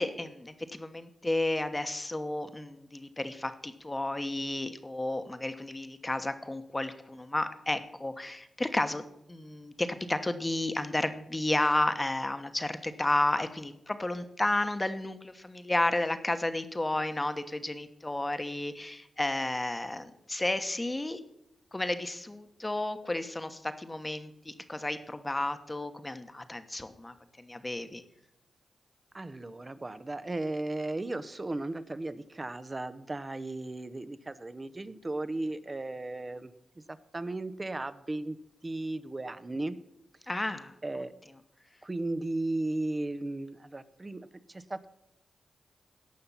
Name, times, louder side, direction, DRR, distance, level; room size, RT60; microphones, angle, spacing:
voice 1, 0.0-21.2 21.7-28.0 40.3-41.0, left 2 dB, 25° left, 9 dB, 1.2 m, -32 dB
voice 2, 29.1-36.5 37.1-38.4 38.6-39.8 40.8-41.1 41.8-44.9, right 2 dB, 30° right, 13 dB, 0.9 m, -35 dB
17.0 x 5.7 x 5.7 m, 0.81 s
supercardioid pair, 45°, 0 cm